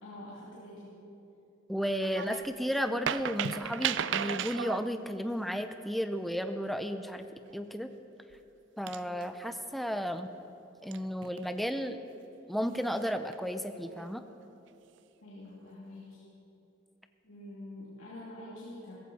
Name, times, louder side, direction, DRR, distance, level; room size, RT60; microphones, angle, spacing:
voice 1, 0.0-0.9 15.2-16.2 17.2-18.9, left 1 dB, 90° left, -8 dB, 2.6 m, -46 dB
voice 2, 1.7-7.3 7.5-7.9 8.8-10.3 10.8-12.0 12.5-14.2, equal, ahead, 8 dB, 0.5 m, -33 dB
sound 1, 2.0-2.5 2.8-4.8 7.5-7.7 8.3-8.4 8.9-9.5 10.9-11.6 12.8-13.3 13.9-14.1, right 9 dB, 65° right, 0.4 m, -35 dB
16.0 x 15.0 x 4.2 m, 2.9 s
head